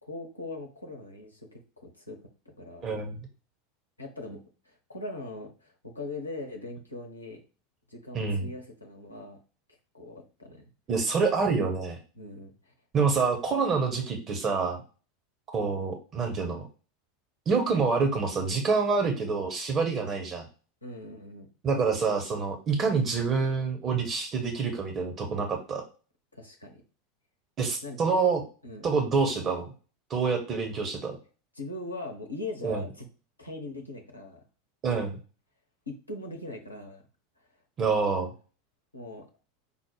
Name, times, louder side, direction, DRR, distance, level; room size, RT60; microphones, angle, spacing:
voice 1, 0.0-2.2 2.6-3.0 4.0-7.4 7.9-9.4 9.9-10.6 12.1-12.7 20.8-21.5 26.3-26.8 27.8-28.0 28.6-28.9 31.5-33.1 33.4-34.4 35.9-37.0 38.9-39.3, left 2 dB, 90° left, 2 dB, 0.7 m, -40 dB
voice 2, 2.8-3.2 8.1-8.5 10.9-12.0 12.9-14.8 15.5-16.6 17.5-20.5 21.6-25.8 27.6-28.4 28.8-29.7 30.1-31.1 32.6-32.8 34.8-35.2 37.8-38.3, right 4 dB, 35° right, 4 dB, 0.9 m, -27 dB
5.3 x 2.1 x 4.7 m, 0.36 s
figure-of-eight pair, 80°, 0 cm